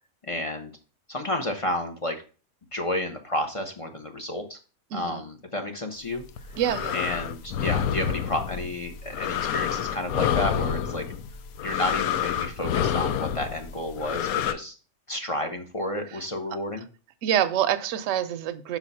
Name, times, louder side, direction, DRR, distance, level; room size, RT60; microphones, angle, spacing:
voice 1, 0.2-0.7 1.1-2.2 2.7-4.6 4.9-6.2 6.9-11.0 11.6-14.7 15.1-16.9, left 1 dB, 35° left, 0.6 m, -31 dB
voice 2, 4.9-5.2 6.6-7.0 17.2-18.8, right 10 dB, 70° right, 0.9 m, -26 dB
sound 1, 6.2-14.5, left 9 dB, 85° left, 1.1 m, -28 dB
5.9 x 4.1 x 5.4 m
omnidirectional pair, 1.5 m